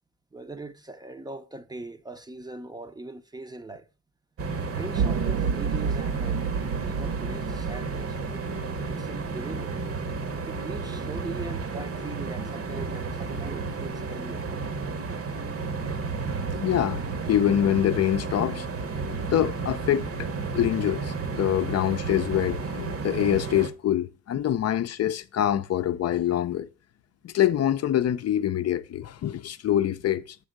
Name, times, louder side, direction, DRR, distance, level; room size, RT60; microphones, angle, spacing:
voice 1, 0.3-3.9 4.7-6.4 6.7-8.4 8.8-9.8 10.5-14.5, right 2 dB, 15° right, 0.7 m, -40 dB
sound 1, 4.4-23.7, right 4 dB, 50° right, 1.1 m, -32 dB
sound 2, 5.0-9.3, right 6 dB, 70° right, 0.5 m, -30 dB
voice 2, 16.6-18.7 19.3-20.3 20.5-26.7 27.2-30.4, left 11 dB, 55° left, 0.6 m, -25 dB
8.1 x 3.5 x 6.4 m
cardioid pair, 90°, 30 cm